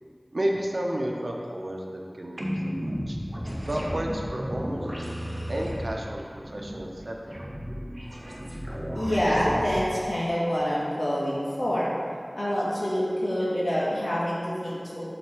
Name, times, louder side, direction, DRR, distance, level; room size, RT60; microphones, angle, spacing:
voice 1, 0.3-3.2 3.7-4.8 5.5-7.1, right 1 dB, 70° right, 0 dB, 0.9 m, -31 dB
sound 1, 2.4-9.8, equal, 30° right, 1.3 m, -34 dB
voice 2, 8.9-11.9 12.3-15.0, equal, 65° left, -7 dB, 2.0 m, -26 dB
7.7 x 4.2 x 6.2 m, 2.2 s
wide cardioid pair, 50°, 0 cm